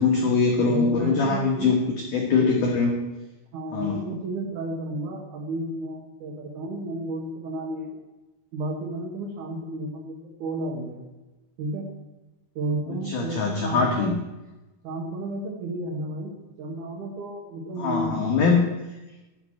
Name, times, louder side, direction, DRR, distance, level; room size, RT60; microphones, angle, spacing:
voice 1, 0.0-1.8 2.1-3.0 3.7-4.0 13.1-14.2 17.8-18.6, left 4 dB, 85° left, 1 dB, 1.8 m, -22 dB
voice 2, 0.7-1.8 3.5-8.0 8.5-11.0 11.6-11.9 12.6-14.1 14.8-18.3, right 2 dB, 70° right, 0 dB, 1.8 m, -32 dB
11.5 x 6.1 x 8.7 m, 1.0 s
omnidirectional pair, 5.8 m